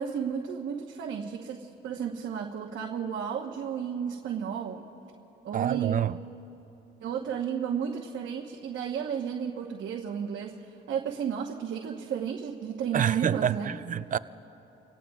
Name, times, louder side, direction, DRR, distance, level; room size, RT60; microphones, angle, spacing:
voice 1, 0.0-4.9 5.4-6.0 7.0-13.7, right 7 dB, 70° right, 1.1 m, -33 dB
voice 2, 5.5-6.2 12.9-14.2, right 9 dB, 40° right, 0.4 m, -27 dB
28.5 x 17.5 x 2.4 m
cardioid pair, 90°, 20 cm